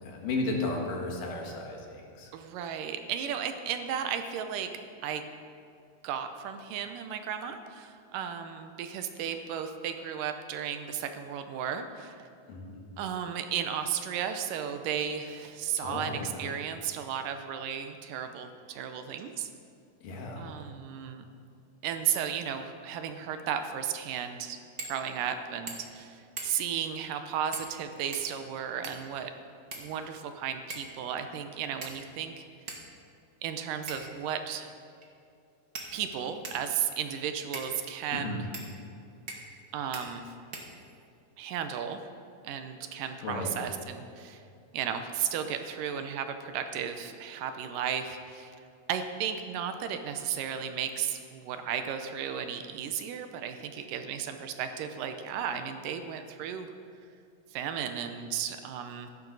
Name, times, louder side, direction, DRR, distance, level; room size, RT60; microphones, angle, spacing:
voice 1, 0.0-2.3 12.5-12.8 15.8-16.5 20.0-20.4 38.1-38.5 43.2-43.6, left 2 dB, 75° left, 1 dB, 3.2 m, -34 dB
voice 2, 2.3-4.7 5.0-5.2 6.0-12.3 13.0-19.5 20.4-21.2 21.8-24.6 24.9-29.3 29.7-32.4 33.4-34.7 35.9-38.5 39.7-40.3 41.4-42.0 42.4-44.4 44.7-48.5 48.9-56.7 57.5-59.1, right 8 dB, 80° right, 7 dB, 2.3 m, -34 dB
sound 1, 24.8-25.0 25.3-25.4 25.7-26.0 26.4-26.8 27.5-27.8 28.1-29.1 29.7-30.3 30.7-31.0 31.8-32.2 32.7-32.8 33.9-34.2 35.0-35.1 35.7-36.7 37.5-37.7 38.5-38.7 39.3-39.6 39.9-40.1 40.5-41.1, right 3 dB, 50° right, 1.1 m, -42 dB
15.5 x 12.0 x 4.0 m, 2.5 s
omnidirectional pair, 3.9 m